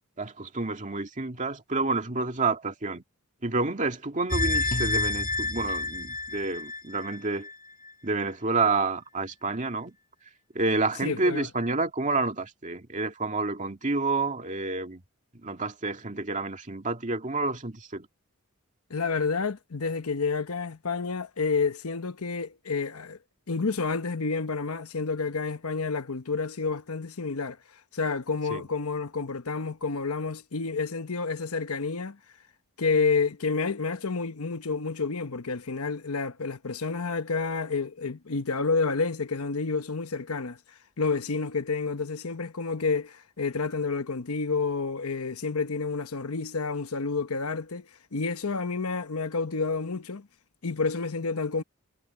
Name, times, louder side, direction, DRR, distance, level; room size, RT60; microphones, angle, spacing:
voice 1, 0.2-3.0 3.4-7.5 8.0-9.9 10.5-15.0 15.3-18.1 28.5-28.7, right 3 dB, 35° right, 2.3 m, -29 dB
sound 1, 4.3-7.5 7.9-8.0, left 2 dB, 40° left, 1.5 m, -29 dB
voice 2, 11.0-11.5 18.9-23.2 23.5-27.6 27.9-32.2 32.8-40.6 41.0-50.3 50.6-51.6, left 4 dB, 75° left, 1.0 m, -29 dB
head